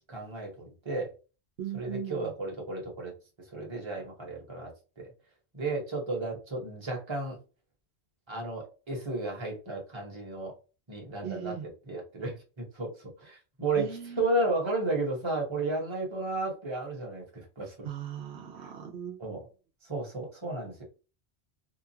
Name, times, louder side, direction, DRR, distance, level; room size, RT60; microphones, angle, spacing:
voice 1, 0.1-1.1 1.7-3.1 3.5-5.1 5.5-7.4 8.3-10.5 10.9-17.9 19.2-19.5 19.8-20.8, right 2 dB, 25° right, 1.0 m, -33 dB
voice 2, 1.6-2.3 11.2-11.7 13.8-14.3 17.8-19.2, right 9 dB, 75° right, 0.8 m, -38 dB
2.8 x 2.3 x 2.7 m
omnidirectional pair, 1.1 m